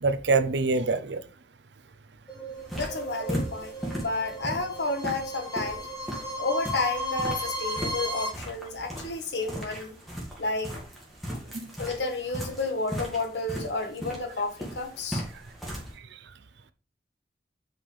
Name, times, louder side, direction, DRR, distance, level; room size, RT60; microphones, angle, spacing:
voice 1, 0.0-1.2 11.5-11.7 16.1-16.2, right 3 dB, 85° right, 0.7 m, -25 dB
sound 1, 2.3-8.3, equal, 25° left, 2.2 m, -35 dB
sound 2, 2.5-15.9, equal, ahead, 2.2 m, -37 dB
voice 2, 2.7-3.8 4.0-5.9 6.4-10.0 10.4-10.8 11.8-15.2, left 3 dB, 85° left, 1.5 m, -31 dB
7.7 x 5.5 x 3.4 m
head